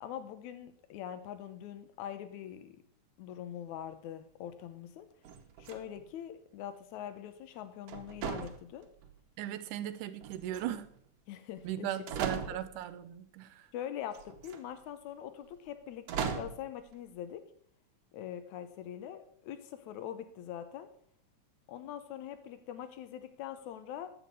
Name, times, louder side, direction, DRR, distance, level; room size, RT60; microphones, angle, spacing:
voice 1, 0.0-2.8 3.2-5.1 5.6-8.9 11.3-11.9 12.2-12.6 13.7-17.4 18.1-20.9 21.7-24.1, left 10 dB, 75° left, 2.2 m, -43 dB
sound 1, 5.2-6.1 7.9-9.2 10.2-11.0 11.7-11.8 12.1-12.9 14.1-14.6 16.1-16.7, right 7 dB, 65° right, 1.9 m, -38 dB
voice 2, 9.4-10.9 11.6-13.7, right 12 dB, 85° right, 2.1 m, -38 dB
10.5 x 8.0 x 5.3 m
omnidirectional pair, 3.6 m